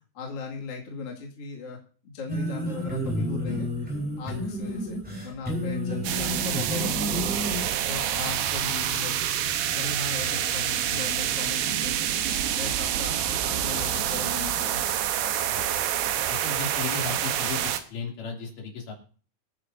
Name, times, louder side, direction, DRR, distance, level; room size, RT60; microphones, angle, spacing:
voice 1, 0.1-1.8 2.0-7.4 7.9-9.2 9.7-12.0 12.6-14.8, left 4 dB, 45° left, -1 dB, 2.8 m, -38 dB
sound 1, 2.3-7.6, equal, 5° right, 3.4 m, -30 dB
sound 2, 6.0-17.8, right 11 dB, 85° right, 2.9 m, -27 dB
voice 2, 16.3-18.9, left 5 dB, 65° left, 1 dB, 4.3 m, -35 dB
25.0 x 9.8 x 2.6 m, 0.41 s
omnidirectional pair, 4.2 m